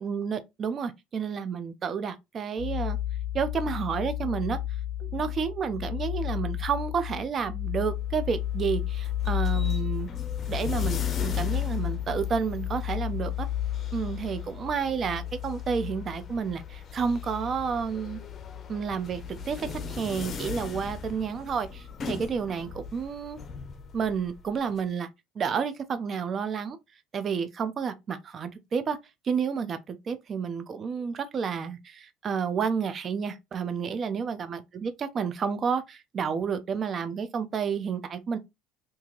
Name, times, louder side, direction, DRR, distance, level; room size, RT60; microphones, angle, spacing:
voice 1, 0.0-3.0 3.3-4.6 5.0-10.1 10.5-13.5 13.9-18.2 18.7-23.4 23.9-25.1 25.3-26.8 27.1-29.0 29.2-38.4, right 6 dB, 40° right, 0.7 m, -30 dB
sound 1, 2.6-22.2, left 12 dB, 10° left, 1.5 m, -33 dB
sound 2, 7.8-24.8, left 5 dB, 40° left, 0.7 m, -41 dB
2.8 x 2.7 x 3.8 m
supercardioid pair, 90°, 0 cm